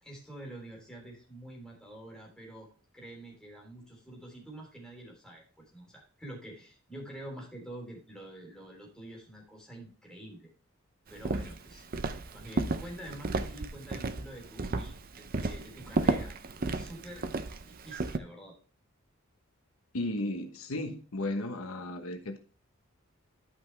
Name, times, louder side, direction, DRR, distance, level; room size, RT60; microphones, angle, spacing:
voice 1, 0.0-10.5 11.1-11.9 12.3-17.3 17.6-18.6, right 1 dB, 5° left, -2 dB, 3.4 m, -47 dB
Walk footsteps, 11.2-18.2, right 3 dB, 45° right, 0.6 m, -33 dB
voice 2, 19.9-22.4, left 1 dB, 85° left, 6 dB, 1.2 m, -34 dB
11.5 x 5.7 x 3.3 m, 0.38 s
head